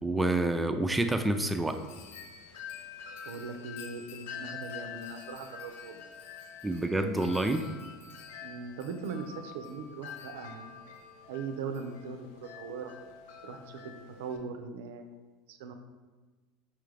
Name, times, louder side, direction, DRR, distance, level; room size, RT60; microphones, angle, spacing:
voice 1, 0.0-1.8 6.6-7.7, right 1 dB, 10° right, 7 dB, 0.3 m, -28 dB
Wind chime, 1.0-14.4, left 7 dB, 80° left, 0.4 m, -47 dB
voice 2, 3.3-6.0 8.4-10.7 11.3-13.0 13.4-15.0 15.5-15.7, right 5 dB, 80° right, 7 dB, 0.4 m, -40 dB
5.6 x 2.4 x 3.2 m, 1.3 s
supercardioid pair, 100°, 0 cm